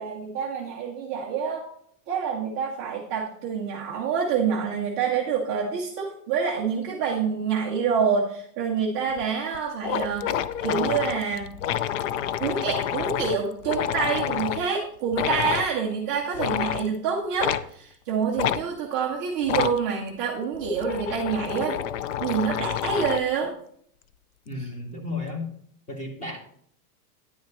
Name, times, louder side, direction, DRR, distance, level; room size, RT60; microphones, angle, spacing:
voice 1, 0.0-1.7 2.1-11.5 12.4-21.8 22.2-23.5, right 6 dB, 15° right, -5 dB, 0.3 m, -27 dB
sound 1, 9.2-9.3 9.5-9.6 9.8-14.7 15.1-15.7 16.3-16.9 17.4-17.7 18.4-18.6 19.4-19.8 20.5-23.3, left 10 dB, 55° left, 0.5 m, -28 dB
voice 2, 24.4-25.5 25.9-26.4, left 2 dB, 15° left, 2 dB, 1.6 m, -33 dB
10.0 x 9.2 x 3.0 m, 0.64 s
supercardioid pair, 170°, 47 cm